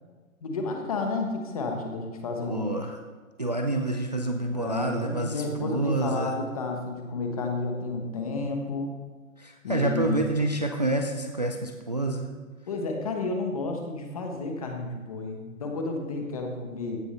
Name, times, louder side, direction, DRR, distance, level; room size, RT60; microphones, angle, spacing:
voice 1, 0.4-2.7 4.5-8.9 9.6-10.3 12.7-17.0, left 3 dB, 25° left, 3 dB, 1.2 m, -31 dB
voice 2, 2.4-3.0 3.4-6.3 8.4-8.5 9.4-12.3, right 2 dB, 30° right, 3 dB, 0.5 m, -28 dB
15.5 x 6.4 x 5.5 m, 1.4 s
hypercardioid pair, 175°, 42 cm